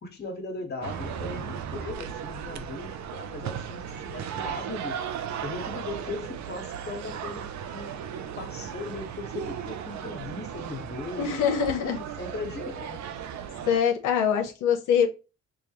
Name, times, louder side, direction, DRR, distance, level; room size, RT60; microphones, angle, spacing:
voice 1, 0.0-5.0 5.4-8.0 8.4-11.4 11.9-13.0, left 3 dB, 35° left, 1.5 m, -38 dB
sound 1, 0.8-13.8, right 8 dB, 65° right, 0.6 m, -36 dB
voice 2, 11.2-12.0 13.7-15.1, left 7 dB, 90° left, 0.8 m, -24 dB
4.9 x 2.3 x 2.9 m
cardioid pair, 90°, 30 cm